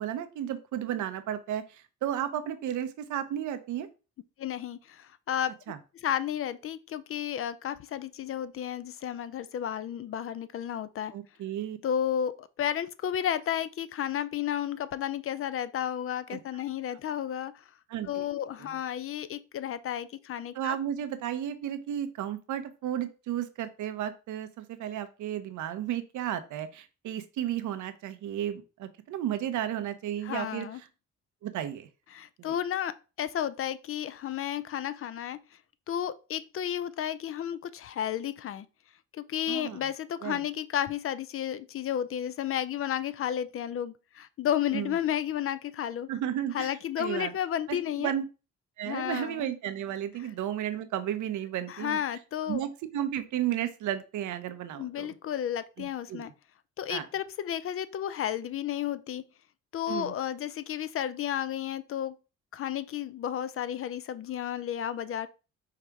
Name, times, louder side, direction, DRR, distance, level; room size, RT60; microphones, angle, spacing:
voice 1, 0.0-3.9 5.7-5.8 11.1-11.8 16.3-16.4 17.9-18.3 18.6-18.7 20.5-30.7 31.4-31.9 32.4-32.5 39.5-39.8 40.2-40.4 44.7-44.9 46.1-46.7 47.0-47.3 47.7-48.2 48.8-52.0 52.5-55.1 55.8-56.2 56.9-57.1 59.9-60.1, right 11 dB, 75° right, 0.7 m, -33 dB
voice 2, 4.4-5.5 6.0-11.1 11.8-17.6 18.0-20.8 30.2-30.8 32.1-32.9 33.2-35.4 35.9-38.7 39.1-46.1 46.5-48.1 48.9-49.5 51.7-52.6 54.8-56.3 56.8-59.2 59.7-62.2 62.5-65.3, left 10 dB, 45° left, 0.4 m, -32 dB
4.7 x 2.8 x 3.4 m
cardioid pair, 90°, 30 cm